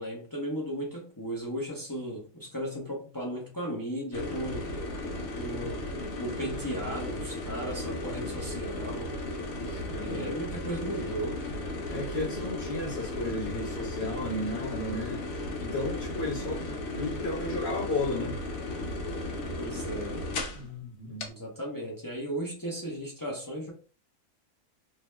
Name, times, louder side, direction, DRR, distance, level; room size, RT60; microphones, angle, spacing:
voice 1, 0.0-4.7 5.4-5.8 6.1-9.1 10.0-11.4 19.6-20.2 21.3-23.7, right 1 dB, 30° left, 0.4 m, -36 dB
sound 1, 4.1-20.7 21.2-21.3, left 2 dB, 75° left, 1.0 m, -35 dB
voice 2, 9.7-10.3 11.9-15.2 15.6-16.6 16.9-18.4 20.5-21.3, left 2 dB, 50° left, 1.1 m, -34 dB
2.7 x 2.1 x 3.1 m
omnidirectional pair, 1.5 m